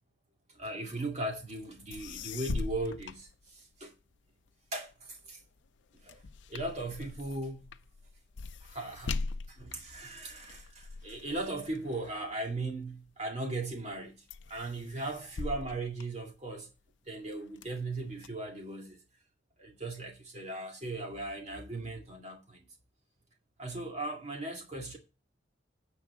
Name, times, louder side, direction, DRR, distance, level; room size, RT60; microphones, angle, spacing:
voice 1, 0.6-3.9 4.7-5.4 6.0-6.2 6.5-7.8 8.6-9.2 9.5-14.2 14.5-16.7 17.1-19.0 19.6-22.7 23.6-25.0, right 2 dB, 35° right, 2.2 m, -38 dB
sound 1, 1.6-1.7 1.9-4.0 4.5-13.1 13.6-14.0 14.3-16.8 17.3-18.3, left 3 dB, 70° left, 0.5 m, -41 dB
9.6 x 4.7 x 7.1 m
head